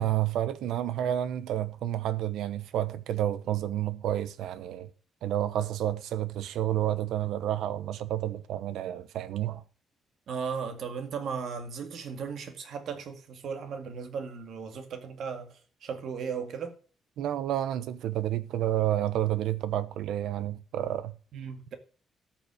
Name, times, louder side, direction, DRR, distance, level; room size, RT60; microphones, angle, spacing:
voice 1, 0.0-4.9 5.2-9.6 17.2-21.2, right 12 dB, 85° right, 0.9 m, -30 dB
voice 2, 10.3-16.7 21.3-21.7, right 6 dB, 60° right, 2.0 m, -36 dB
13.0 x 6.0 x 6.3 m
cardioid pair, 135°, 0 cm